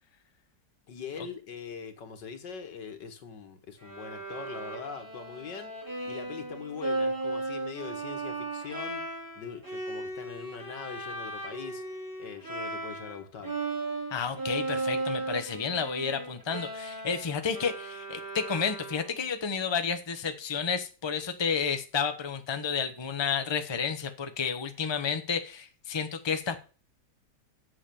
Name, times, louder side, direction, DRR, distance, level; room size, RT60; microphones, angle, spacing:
voice 1, 0.9-9.0 9.4-11.8 12.2-13.6, left 6 dB, 80° left, 2.2 m, -42 dB
Bowed string instrument, 3.8-13.2 13.4-19.3, right 2 dB, 10° right, 3.7 m, -36 dB
voice 2, 14.1-26.6, left 6 dB, 20° left, 0.9 m, -31 dB
8.5 x 7.1 x 6.9 m
omnidirectional pair, 1.9 m